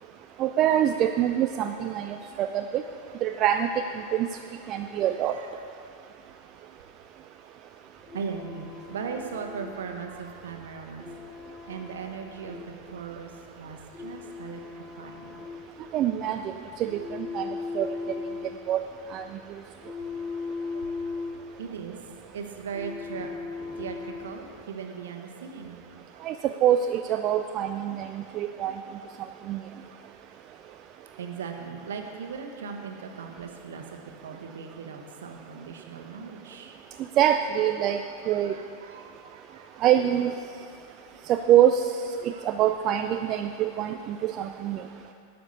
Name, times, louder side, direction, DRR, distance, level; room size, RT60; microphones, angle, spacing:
voice 1, 0.4-2.8 3.2-3.7 4.1-4.3 4.7-5.3 15.9-16.4 16.8-16.9 17.3-17.4 17.7-17.9 18.7-18.8 19.1-19.2 26.2-26.3 26.6-28.1 28.3-28.7 29.5-29.6 37.2-38.0 38.3-38.5 39.8-40.3 41.3-41.8 42.2-44.8, right 11 dB, 35° right, 6 dB, 0.3 m, -24 dB
voice 2, 5.0-5.5 6.2-6.3 7.4-7.5 8.1-11.1 11.4-15.4 20.6-21.1 21.6-22.0 22.2-25.8 26.1-26.5 31.2-37.0 38.2-39.8 42.3-42.5 45.0-45.1, right 6 dB, 60° right, 4 dB, 1.0 m, -39 dB
sound 1, 8.0-24.6, left 4 dB, 20° left, 0.9 m, -39 dB
12.0 x 5.0 x 6.9 m, 2.5 s
figure-of-eight pair, 90°, 0 cm